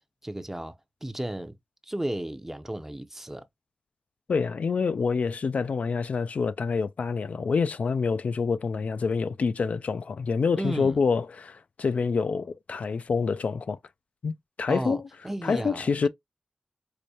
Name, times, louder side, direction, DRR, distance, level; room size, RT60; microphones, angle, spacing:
voice 1, 0.2-1.5 1.8-3.4 10.6-11.0 14.7-16.1, right 1 dB, 15° right, 0.5 m, -34 dB
voice 2, 4.3-13.8 14.2-15.0 15.4-16.1, left 5 dB, 70° left, 0.3 m, -27 dB
4.8 x 2.1 x 2.7 m
cardioid pair, 60°, 3 cm